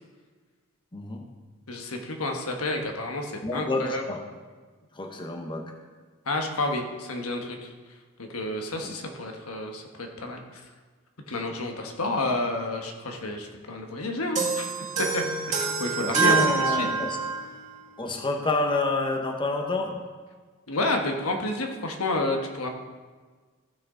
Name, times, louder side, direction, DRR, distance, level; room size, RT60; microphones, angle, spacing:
voice 1, 0.9-1.3 3.4-4.2 4.9-5.7 8.8-9.0 16.0-17.2 18.0-20.0, left 2 dB, 25° left, 3 dB, 0.9 m, -28 dB
voice 2, 1.7-4.0 6.3-7.7 8.2-10.6 11.3-14.7 15.0-15.2 15.5-16.4 16.7-17.0 20.7-22.7, left 2 dB, 90° left, 3 dB, 1.3 m, -30 dB
sound 1, 14.4-17.6, right 4 dB, 35° right, 1.8 m, -26 dB
15.0 x 6.4 x 3.8 m, 1.4 s
head